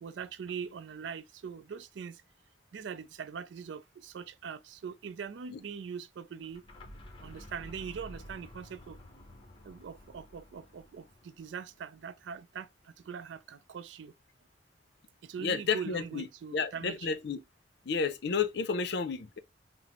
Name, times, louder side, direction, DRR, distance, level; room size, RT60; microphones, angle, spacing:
voice 1, 0.0-2.2 2.7-6.6 7.2-9.0 9.6-12.7 13.1-14.1 15.2-17.2, right 6 dB, 70° right, 0.4 m, -42 dB
sound 1, 6.4-12.2, left 1 dB, 30° left, 0.8 m, -51 dB
voice 2, 15.4-16.3 16.5-17.4 17.9-19.4, left 5 dB, 60° left, 0.5 m, -31 dB
5.7 x 2.0 x 2.9 m
head